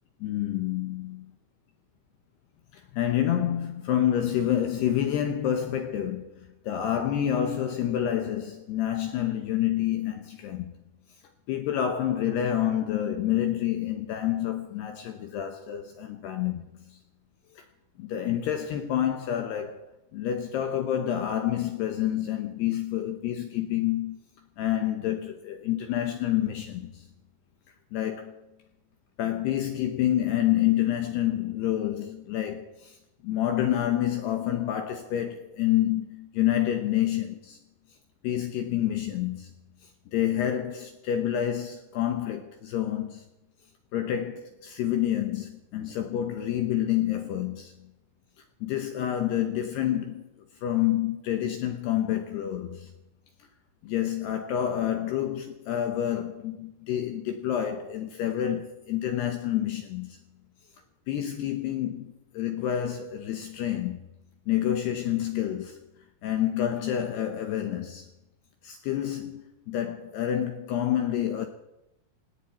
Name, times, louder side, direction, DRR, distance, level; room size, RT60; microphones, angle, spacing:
voice 1, 0.2-1.3 2.7-10.7 11.5-17.0 17.6-17.7 18.0-24.2 24.6-27.1 27.9-28.4 29.2-33.0 33.2-37.6 38.2-39.5 39.8-43.2 43.9-47.7 48.6-52.9 53.8-60.2 61.1-64.1 64.5-65.8 66.2-68.1 68.6-71.5, left 11 dB, 75° left, 2.6 m, -28 dB
18.5 x 18.0 x 4.3 m
omnidirectional pair, 5.9 m